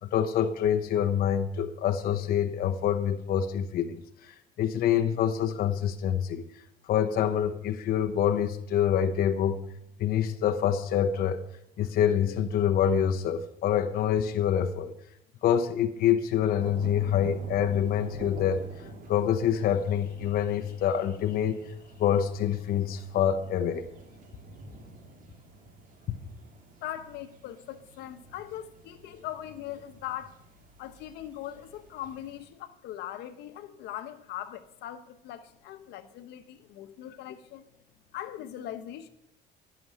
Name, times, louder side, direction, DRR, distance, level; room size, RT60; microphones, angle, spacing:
voice 1, 0.0-4.0 4.3-6.5 6.9-9.6 10.0-11.4 11.8-14.9 15.4-18.7 19.1-21.6 22.0-23.9 26.1-26.2, left 9 dB, 60° left, 0.9 m, -26 dB
sound 1, 16.6-32.5, right 2 dB, 50° right, 2.4 m, -48 dB
voice 2, 26.8-30.4 30.8-37.6 38.1-39.1, left 12 dB, 85° left, 1.0 m, -40 dB
11.0 x 6.9 x 8.9 m
cardioid pair, 110°, 17 cm